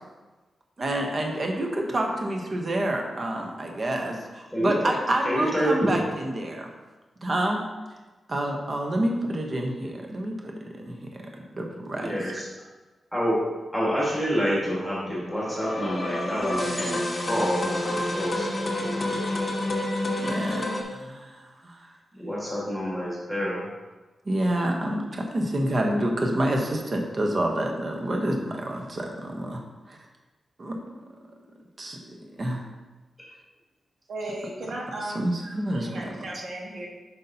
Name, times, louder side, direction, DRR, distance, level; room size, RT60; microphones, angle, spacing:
voice 1, 0.8-6.7 7.2-7.6 8.3-11.0 11.6-12.2 20.1-21.8 24.3-29.6 29.9-30.0 30.6-30.8 31.8-32.6 35.1-35.9, right 1 dB, 30° right, 2 dB, 0.9 m, -28 dB
voice 2, 4.5-4.9 5.2-6.0 12.0-12.4 13.1-13.4 13.7-18.5 18.7-19.1 22.1-23.7 33.2-33.3, equal, ahead, -7 dB, 1.6 m, -28 dB
sound 1, 15.2-20.8, left 1 dB, 30° left, 0.9 m, -28 dB
voice 3, 34.1-36.9, right 1 dB, 55° right, -2 dB, 1.3 m, -36 dB
8.1 x 5.5 x 2.7 m, 1.2 s
wide cardioid pair, 180°, 0 cm